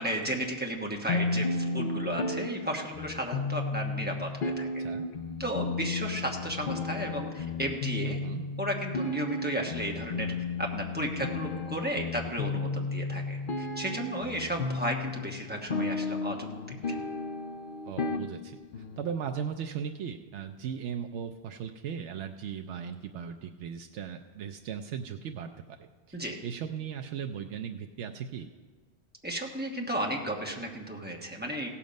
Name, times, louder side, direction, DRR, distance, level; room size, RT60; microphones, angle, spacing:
voice 1, 0.0-4.7 5.4-8.2 8.6-10.3 10.6-17.0 26.1-26.4 29.2-31.7, right 1 dB, 10° right, 0 dB, 1.1 m, -34 dB
sound 1, 1.1-19.1, left 3 dB, 55° left, 0.8 m, -33 dB
voice 2, 1.1-1.5 4.8-5.0 8.0-8.4 17.9-18.6 19.0-25.5 26.1-26.2 26.4-28.5, right 8 dB, 85° right, 5 dB, 0.9 m, -37 dB
16.5 x 7.2 x 5.2 m, 1.4 s
omnidirectional pair, 1.2 m